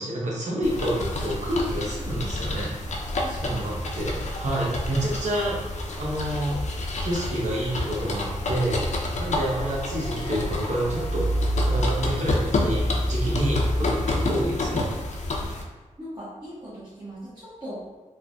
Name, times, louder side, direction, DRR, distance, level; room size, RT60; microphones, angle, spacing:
voice 1, 0.0-2.7 3.4-5.6 6.0-6.6 7.0-11.3 11.6-14.9, right 1 dB, 65° right, -4 dB, 0.8 m, -28 dB
sound 1, 0.6-15.6, left 1 dB, 65° left, 0.4 m, -28 dB
voice 2, 3.2-3.8 15.4-15.5 16.0-18.0, right 1 dB, 35° right, -9 dB, 0.8 m, -39 dB
Harp, 7.5-12.8, left 1 dB, 90° right, 1.1 m, -45 dB
3.2 x 2.1 x 2.5 m, 1.2 s
wide cardioid pair, 75°, 13 cm